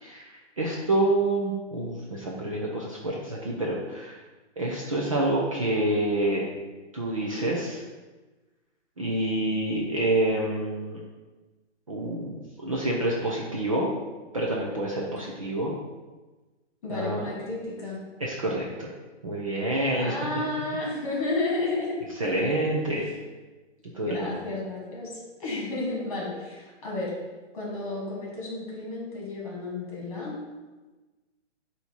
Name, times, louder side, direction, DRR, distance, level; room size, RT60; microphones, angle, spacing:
voice 1, 0.0-4.2 4.6-6.5 6.9-7.8 9.0-11.0 11.9-13.9 14.3-15.7 16.9-17.3 18.2-18.9 19.2-20.2 22.2-23.1 23.9-24.3, right 1 dB, 30° right, -3 dB, 0.5 m, -27 dB
voice 2, 16.8-18.0 19.9-22.6 24.0-25.1 25.4-27.1 27.5-30.4, left 2 dB, 30° left, -4 dB, 1.8 m, -32 dB
8.0 x 2.8 x 4.4 m, 1.2 s
hypercardioid pair, 175°, 35 cm